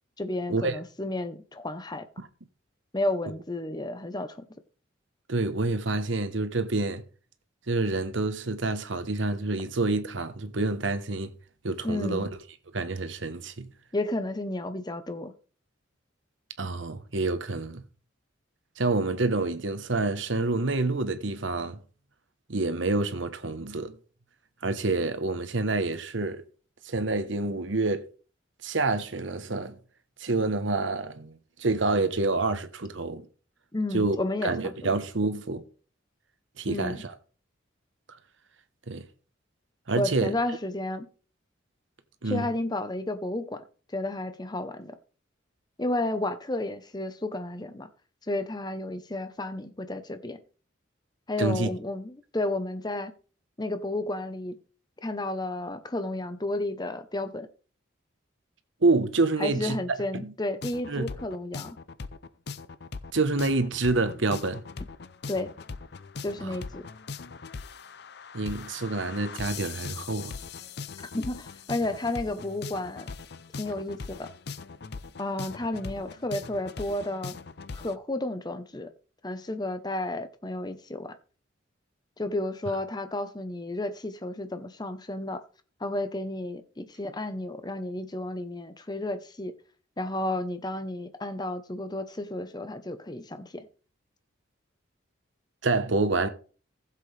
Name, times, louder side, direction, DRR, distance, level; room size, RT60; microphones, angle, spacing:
voice 1, 0.2-2.1 2.9-4.5 11.8-12.3 13.9-15.3 33.7-34.7 36.7-37.0 39.9-41.1 42.2-43.6 43.9-44.9 45.8-47.9 48.3-50.4 51.3-53.1 53.6-54.5 55.0-57.5 59.4-61.8 65.3-65.5 66.2-66.9 71.1-73.1 73.6-74.3 75.2-77.3 77.7-78.9 79.2-81.1 82.2-85.4 85.8-89.5 90.0-93.6, left 1 dB, 20° left, 0.9 m, -32 dB
voice 2, 5.3-7.0 7.7-11.3 11.6-12.3 12.7-13.7 16.6-17.8 18.8-21.8 22.5-23.9 24.6-26.4 26.8-28.0 28.6-29.8 30.2-33.2 33.9-34.2 34.4-35.6 36.6-37.1 38.1-38.2 38.9-39.1 39.9-40.3 42.2-42.5 51.4-51.7 58.8-59.8 60.1-60.3 60.9-61.1 63.1-64.7 66.4-66.6 68.3-70.4 95.6-96.3, right 3 dB, 75° right, 1.1 m, -27 dB
sound 1, 60.6-78.0, left 5 dB, 55° left, 0.6 m, -40 dB
15.5 x 7.7 x 3.4 m
head